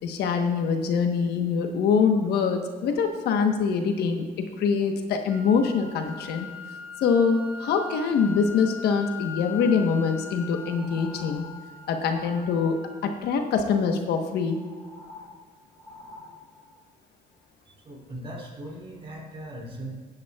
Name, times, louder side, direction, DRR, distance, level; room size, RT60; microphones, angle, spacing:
voice 1, 0.0-6.5 7.0-11.4 11.9-14.6, left 5 dB, 70° left, 5 dB, 1.2 m, -24 dB
sound 1, 5.3-13.3, left 4 dB, 15° right, 2.6 m, -41 dB
sound 2, 9.3-13.0 13.4-14.1 14.4-16.8 17.4-17.5, left 2 dB, 20° left, 2.7 m, -47 dB
voice 2, 17.7-19.9, right 1 dB, 35° right, -1 dB, 2.9 m, -39 dB
16.0 x 9.3 x 2.4 m, 1.5 s
cardioid pair, 110°, 17 cm